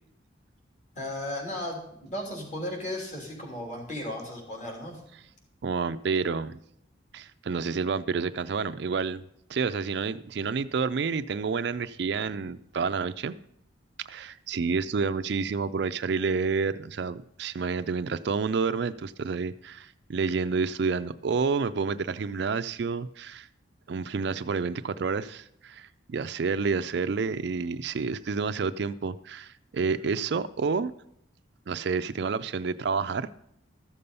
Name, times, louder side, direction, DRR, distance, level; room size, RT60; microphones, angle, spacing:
voice 1, 0.9-5.0, left 1 dB, 40° left, -1 dB, 3.1 m, -35 dB
voice 2, 5.6-6.6 7.1-9.2 9.5-13.4 14.0-23.5 23.9-30.9 31.7-33.3, right 5 dB, 60° right, 11 dB, 0.4 m, -29 dB
13.5 x 6.9 x 5.4 m, 0.75 s
head